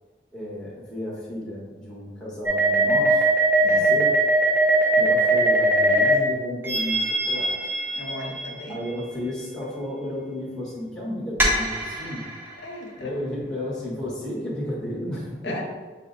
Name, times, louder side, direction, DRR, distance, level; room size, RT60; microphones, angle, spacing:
voice 1, 0.3-3.3 3.6-4.2 5.0-7.7 8.7-12.2 13.0-15.6, left 1 dB, 5° left, -7 dB, 1.0 m, -33 dB
sound 1, 2.5-6.2 6.6-8.8 11.4-12.4, right 2 dB, 10° right, 0.6 m, -21 dB
voice 2, 3.6-3.9 7.9-8.8 12.6-13.1 15.4-15.6, left 1 dB, 85° left, 0 dB, 0.8 m, -36 dB
5.6 x 2.1 x 3.6 m, 1.4 s
head